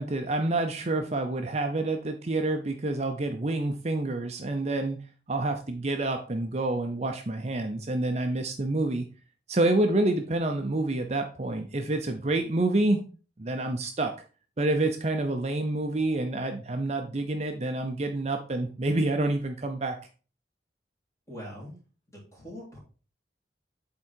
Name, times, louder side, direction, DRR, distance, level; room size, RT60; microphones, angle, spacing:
voice 1, 0.0-5.0 5.3-9.1 9.5-13.0 13.4-14.1 14.6-20.0, right 2 dB, 40° right, 5 dB, 0.6 m, -28 dB
voice 2, 21.3-21.8 22.1-22.8, equal, 15° left, -3 dB, 3.1 m, -42 dB
8.2 x 3.7 x 4.4 m, 0.36 s
head